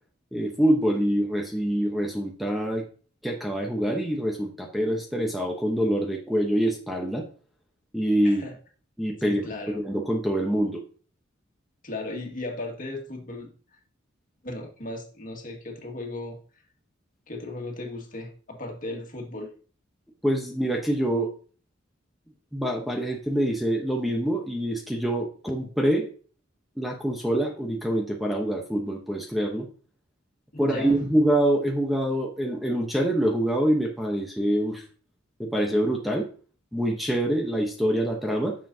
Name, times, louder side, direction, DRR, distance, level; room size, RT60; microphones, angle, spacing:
voice 1, 0.3-2.9 3.2-7.3 7.9-8.4 9.0-10.8 20.2-21.3 22.5-26.1 26.8-29.7 30.6-34.8 35.4-36.3 36.7-38.6, right 1 dB, ahead, 1 dB, 0.9 m, -25 dB
voice 2, 9.2-9.8 11.8-13.5 14.4-16.4 17.3-19.5 30.5-30.9, left 2 dB, 45° left, 1 dB, 1.9 m, -36 dB
9.8 x 6.8 x 2.8 m, 0.40 s
head